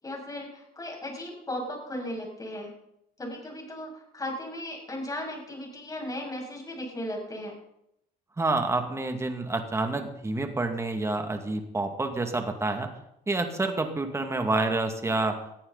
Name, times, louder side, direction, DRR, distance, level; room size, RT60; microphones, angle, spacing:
voice 1, 0.0-2.7 3.2-7.5, left 1 dB, 20° left, 0 dB, 6.7 m, -36 dB
voice 2, 8.4-12.9 13.3-15.4, right 2 dB, 15° right, 5 dB, 2.3 m, -28 dB
20.5 x 14.5 x 4.2 m, 0.79 s
cardioid pair, 110°, 17 cm